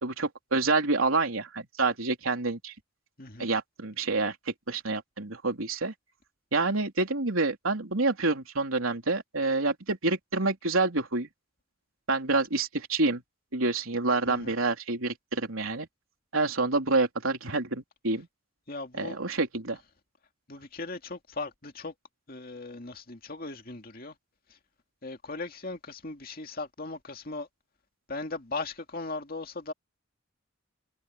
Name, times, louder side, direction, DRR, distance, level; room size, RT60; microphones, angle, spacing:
voice 1, 0.0-2.7 3.4-5.9 6.5-11.3 12.1-13.2 13.5-15.9 16.3-18.3 19.0-19.8, right 3 dB, 85° right, 3.5 m, -28 dB
voice 2, 3.2-3.5 14.3-14.6 18.7-19.2 20.5-21.9 22.3-24.2 24.5-24.6 25.0-27.5 28.1-29.7, left 3 dB, 45° left, 2.4 m, -38 dB
head